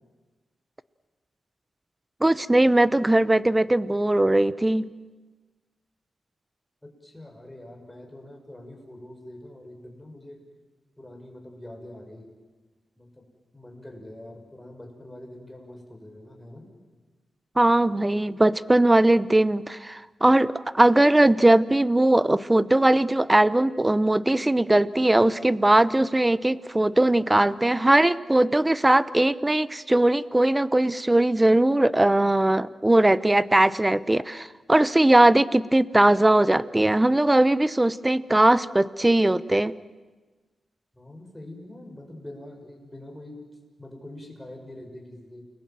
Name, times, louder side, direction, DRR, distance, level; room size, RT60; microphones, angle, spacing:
voice 1, 2.2-4.9 17.6-39.7, right 1 dB, 15° right, 17 dB, 0.8 m, -20 dB
voice 2, 6.8-10.4 11.0-12.3 13.0-13.3 13.5-16.7 40.9-43.4 43.8-45.4, left 1 dB, 10° left, 1 dB, 6.8 m, -44 dB
29.5 x 21.5 x 7.7 m, 1.3 s
cardioid pair, 75°, 0 cm